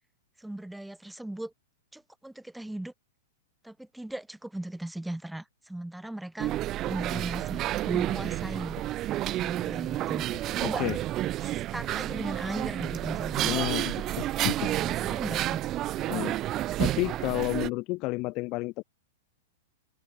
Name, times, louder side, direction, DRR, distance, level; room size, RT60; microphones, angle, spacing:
voice 1, 0.4-1.5 1.9-2.9 3.6-6.5 6.9-8.8 9.4-10.2 10.5-10.8 11.4-13.5 13.9-14.1 14.6-15.6, right 1 dB, 5° right, 3.4 m, -38 dB
sound 1, 6.4-17.7, right 14 dB, 30° right, 1.7 m, -30 dB
voice 2, 10.6-11.0 13.4-14.1 14.4-14.7 16.1-16.3 16.8-18.8, left 23 dB, 40° left, 0.7 m, -30 dB
open air
figure-of-eight pair, 105°, 0 cm